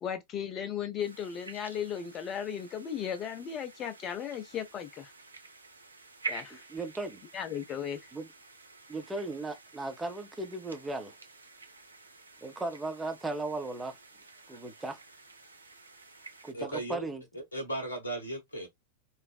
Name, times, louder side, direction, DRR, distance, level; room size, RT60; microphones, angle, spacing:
voice 1, 0.0-5.1 6.3-6.6 7.3-8.1, left 8 dB, 30° left, 0.6 m, -36 dB
sound 1, 1.0-16.5, right 4 dB, 80° right, 0.5 m, -48 dB
voice 2, 6.7-7.2 8.1-8.3 8.9-11.1 12.4-14.0 14.5-15.0 16.4-17.2, right 2 dB, 10° right, 0.6 m, -36 dB
voice 3, 16.5-17.0 17.3-18.7, right 1 dB, 75° left, 0.8 m, -36 dB
3.3 x 2.1 x 2.3 m
figure-of-eight pair, 90°, 0 cm